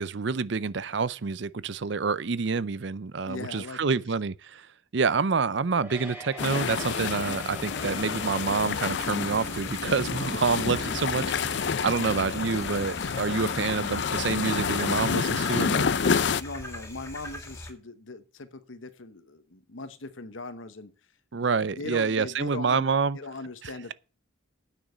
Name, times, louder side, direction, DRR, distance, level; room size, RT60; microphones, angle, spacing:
voice 1, 0.0-4.7 4.9-15.9 21.3-23.2 23.6-23.7, right 5 dB, 60° right, 0.5 m, -28 dB
voice 2, 3.3-4.1 16.4-20.9 21.3-23.9, left 2 dB, 75° left, 1.1 m, -40 dB
sound 1, 5.5-16.5, right 2 dB, 10° right, 3.0 m, -45 dB
sound 2, 6.4-16.4, left 6 dB, 60° left, 0.5 m, -29 dB
Frogs (lots), 7.7-17.7, left 1 dB, 15° left, 2.2 m, -42 dB
9.2 x 6.4 x 8.0 m
head